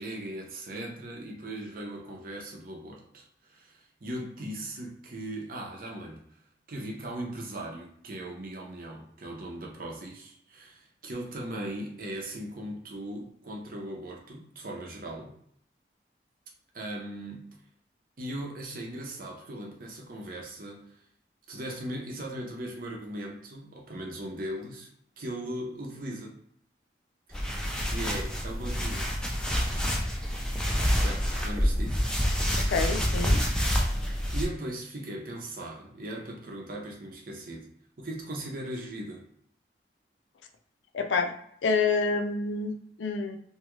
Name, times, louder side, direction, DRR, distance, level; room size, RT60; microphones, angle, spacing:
voice 1, 0.0-6.2 6.7-15.3 16.7-17.5 18.2-21.0 21.5-24.9 25.2-26.4 27.8-29.2 31.0-32.1 34.3-37.7 38.0-39.3, right 1 dB, 50° right, -1 dB, 0.7 m, -38 dB
sound 1, 27.3-34.5, equal, 5° left, 0.3 m, -27 dB
voice 2, 32.7-33.4 40.9-41.3 41.6-43.4, left 4 dB, 80° left, 5 dB, 0.4 m, -28 dB
2.7 x 2.3 x 3.0 m, 0.66 s
head